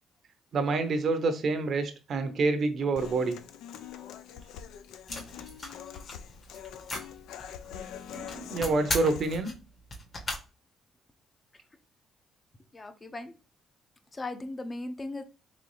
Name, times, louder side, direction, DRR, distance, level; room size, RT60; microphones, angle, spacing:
voice 1, 0.5-3.4 7.8-7.9 8.1-9.5, right 3 dB, 55° right, 7 dB, 0.6 m, -27 dB
Human voice / Acoustic guitar, 2.9-9.4, left 9 dB, 85° left, 0.4 m, -44 dB
sound 1, 5.1-10.4, left 2 dB, 45° left, 1.5 m, -38 dB
voice 2, 12.7-13.3 14.1-15.2, left 2 dB, 25° left, 8 dB, 0.6 m, -37 dB
3.9 x 3.4 x 3.2 m, 0.33 s
cardioid pair, 90°, 0 cm